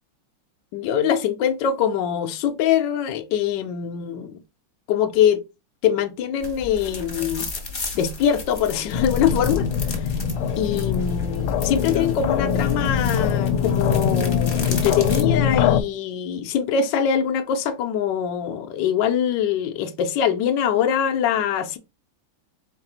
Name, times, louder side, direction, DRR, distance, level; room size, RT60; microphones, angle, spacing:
voice 1, 0.7-4.3 4.9-5.4 5.8-7.5 7.9-10.1 10.6-21.8, left 8 dB, 70° left, 1.2 m, -23 dB
sound 1, 6.4-15.2, left 3 dB, 30° left, 1.0 m, -34 dB
sound 2, 8.9-15.8, left 7 dB, 90° left, 1.4 m, -23 dB
4.2 x 4.0 x 2.8 m
omnidirectional pair, 2.2 m